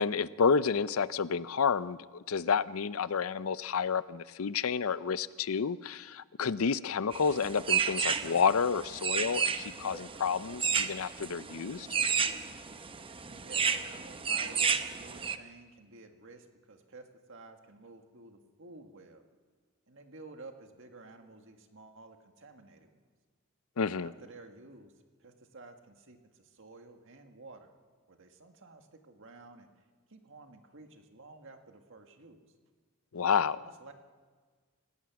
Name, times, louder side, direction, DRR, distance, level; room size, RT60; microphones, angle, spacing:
voice 1, 0.0-11.9 23.8-24.1 33.1-33.7, left 6 dB, 70° left, 16 dB, 0.6 m, -30 dB
sound 1, 7.1-15.4, right 6 dB, 25° right, 0.8 m, -32 dB
voice 2, 13.3-19.2 19.9-23.0 23.9-24.9 25.2-27.7 28.1-29.7 30.1-32.4 33.5-33.9, right 3 dB, 60° right, 5 dB, 1.9 m, -52 dB
28.0 x 16.5 x 6.1 m, 1.5 s
head